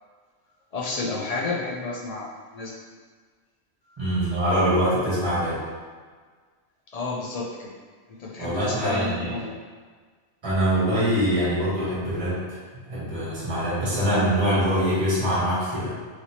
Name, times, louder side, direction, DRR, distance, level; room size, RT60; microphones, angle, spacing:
voice 1, 0.7-2.7 6.9-7.7 8.1-9.5, left 3 dB, 60° left, -4 dB, 0.4 m, -31 dB
voice 2, 4.0-5.6 8.4-9.4 10.4-12.6 12.9-15.9, equal, 25° right, -9 dB, 1.1 m, -24 dB
3.2 x 2.7 x 2.9 m, 1.6 s
omnidirectional pair, 1.2 m